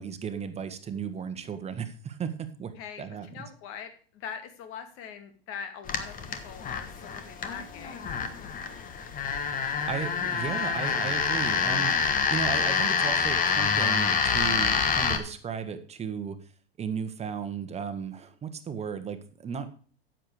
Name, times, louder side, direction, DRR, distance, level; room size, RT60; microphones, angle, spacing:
voice 1, 0.0-2.7 3.0-3.3 9.8-16.4 16.8-19.7, right 7 dB, 20° right, 9 dB, 1.4 m, -35 dB
voice 2, 2.8-8.1, left 7 dB, 45° left, 8 dB, 2.2 m, -42 dB
sound 1, 5.9-15.2, left 6 dB, 30° left, 1.3 m, -27 dB
10.0 x 7.7 x 4.9 m, 0.41 s
hypercardioid pair, 100°, 30 cm